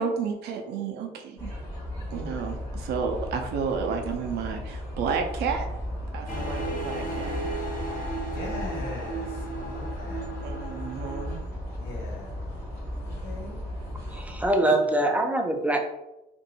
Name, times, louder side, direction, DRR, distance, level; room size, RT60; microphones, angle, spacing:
voice 1, 0.0-1.5 2.1-5.7 6.1-7.4 10.4-11.4 14.1-14.2, right 5 dB, 75° right, 3 dB, 0.7 m, -31 dB
sound 1, 1.4-14.5, left 1 dB, 10° left, 1.5 m, -35 dB
sound 2, 6.3-11.4, right 2 dB, 55° left, 1.3 m, -35 dB
voice 2, 8.2-10.3 11.8-12.4 13.0-13.6, left 2 dB, 85° left, -2 dB, 1.3 m, -40 dB
voice 3, 14.1-15.8, right 1 dB, 10° right, 4 dB, 0.5 m, -23 dB
2.7 x 2.6 x 4.0 m, 0.92 s
cardioid pair, 110°, 17 cm